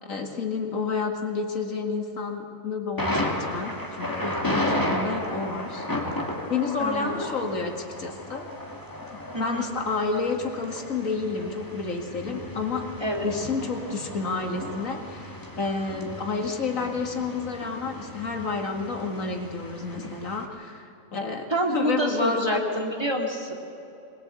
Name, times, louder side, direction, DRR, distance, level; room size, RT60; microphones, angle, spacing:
voice 1, 0.0-5.9 6.5-8.5 9.4-12.9 13.2-22.6, left 4 dB, 70° left, 3 dB, 2.3 m, -30 dB
Thunder, 3.0-20.4, left 1 dB, 15° left, 2.2 m, -34 dB
voice 2, 6.8-7.1 9.3-9.7 13.0-13.3 21.5-23.5, right 1 dB, 20° right, 1 dB, 2.5 m, -27 dB
22.0 x 21.0 x 8.3 m, 2.8 s
omnidirectional pair, 1.4 m